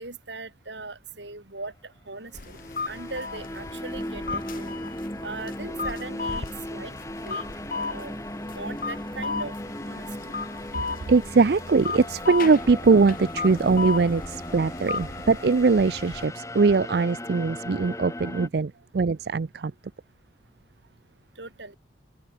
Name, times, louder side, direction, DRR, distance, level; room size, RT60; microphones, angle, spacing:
voice 1, 0.0-2.6 2.9-4.8 5.2-6.9 7.2-7.4 7.8-8.2 8.4-9.5 9.9-10.1 21.4-21.7, right 3 dB, 80° right, 7.2 m, -39 dB
sound 1, 2.2-18.5, left 1 dB, 15° left, 5.1 m, -37 dB
sound 2, 2.3-16.3, left 4 dB, 50° left, 1.6 m, -35 dB
voice 2, 11.1-19.7, right 4 dB, 65° right, 0.5 m, -21 dB
open air
head